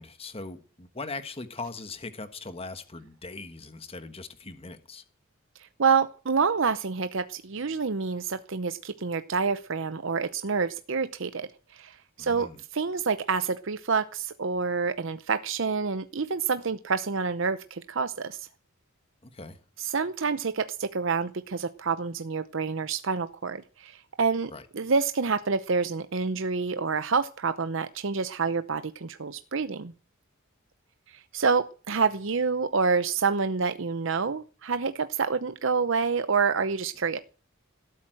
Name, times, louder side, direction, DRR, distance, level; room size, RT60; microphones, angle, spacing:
voice 1, 0.0-5.0 12.2-12.6 19.2-19.6 24.5-24.6, left 3 dB, 30° left, 1.4 m, -40 dB
voice 2, 5.8-18.5 19.8-29.9 31.1-37.2, right 5 dB, 65° right, 0.7 m, -28 dB
17.0 x 8.6 x 7.7 m
head